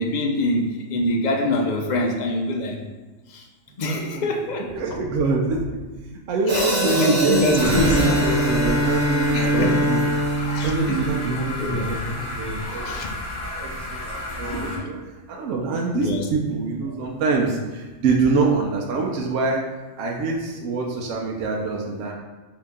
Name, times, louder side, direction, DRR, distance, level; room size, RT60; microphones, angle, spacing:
voice 1, 0.0-2.8 3.3-3.4 3.8-4.7 6.5-8.1 9.3-9.7 10.5-11.0 11.6-11.9 12.7-13.1 14.5-14.9 15.9-16.2, left 2 dB, 75° left, 1 dB, 0.4 m, -24 dB
voice 2, 4.7-5.8 6.3-10.0 10.6-12.8 13.1-13.2 13.6-15.0 15.3-19.6 20.0-22.1, right 4 dB, 75° right, -1 dB, 0.9 m, -25 dB
Hi-hat, 6.5-10.7, right 1 dB, 40° right, 0.9 m, -28 dB
Bowed string instrument, 7.6-11.7, equal, 55° left, 1.3 m, -23 dB
sound 1, 7.6-14.8, left 1 dB, 25° left, 0.6 m, -31 dB
3.8 x 2.8 x 3.5 m, 1.2 s
omnidirectional pair, 1.3 m